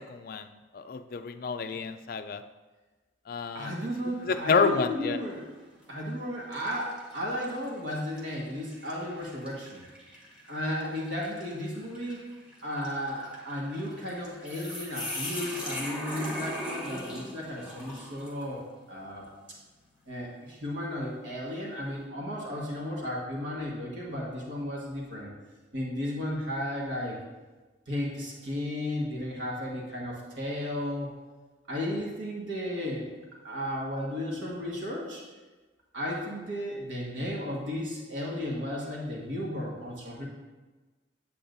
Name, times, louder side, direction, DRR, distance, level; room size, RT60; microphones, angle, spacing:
voice 1, 0.1-0.5 0.7-2.4 3.3-3.7 4.2-5.2, left 4 dB, 50° left, 9 dB, 0.3 m, -28 dB
voice 2, 3.5-5.5 5.9-9.8 10.5-12.2 12.6-18.6 18.9-19.2 20.1-25.3 25.7-27.2 27.9-31.1 31.7-33.2 33.4-35.2 35.9-40.3, left 1 dB, 75° right, -3 dB, 1.5 m, -34 dB
sound 1, 3.6-4.1 4.6-4.7 5.7-5.9 6.5-18.5, left 1 dB, 5° right, 1.3 m, -41 dB
8.6 x 7.7 x 2.6 m, 1.2 s
head